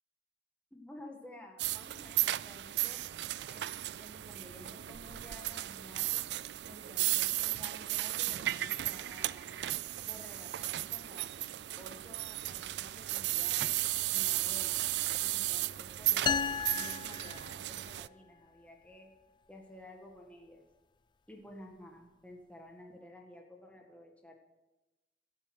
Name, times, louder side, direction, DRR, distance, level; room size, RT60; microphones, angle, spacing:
voice 1, 0.7-3.0 3.5-6.2 6.7-9.7 10.0-11.3 11.8-13.9 14.1-14.8 15.2-19.1 19.5-20.6 21.3-24.3, left 1 dB, 10° left, 0 dB, 1.7 m, -53 dB
sound 1, 1.6-18.1, right 15 dB, 70° right, 0.4 m, -35 dB
sound 2, 16.3-18.0, left 6 dB, 25° left, 0.4 m, -34 dB
14.5 x 8.6 x 7.8 m, 1.1 s
head